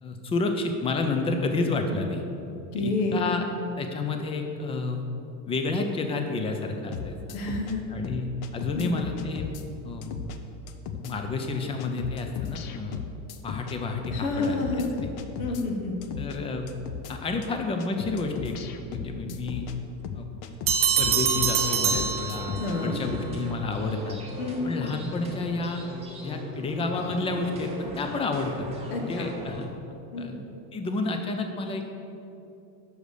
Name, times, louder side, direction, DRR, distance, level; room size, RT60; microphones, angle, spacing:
voice 1, 0.0-2.2 2.7-3.5 3.8-5.0 5.5-7.4 7.9-10.2 10.9-13.0 13.4-14.8 16.2-16.7 17.1-18.6 18.9-19.7 20.1-20.3 21.0-24.2 24.6-25.8 26.2-28.7 29.0-29.7 30.2-30.3 30.7-31.9, left 3 dB, 15° left, 5 dB, 0.4 m, -30 dB
voice 2, 2.7-3.2 7.3-7.8 8.7-8.9 14.1-15.0 15.4-16.0 22.6-23.0 24.4-24.9 28.9-29.3 30.1-30.2, left 3 dB, 75° left, 2 dB, 1.4 m, -29 dB
sound 1, 6.9-7.8 8.0-9.6 10.0-10.4 10.7-11.1 11.4-11.5 11.8-13.8 14.0-15.6 16.0-16.4 16.7-17.1 17.4-17.5 17.8-19.8 20.0-22.8 23.0-23.3, left 7 dB, 60° left, 0.7 m, -36 dB
sound 2, 20.7-22.9, right 7 dB, 30° right, 0.6 m, -25 dB
sound 3, 21.4-29.7, right 1 dB, 15° right, 1.3 m, -39 dB
6.3 x 5.2 x 6.5 m, 2.8 s
supercardioid pair, 145°, 43 cm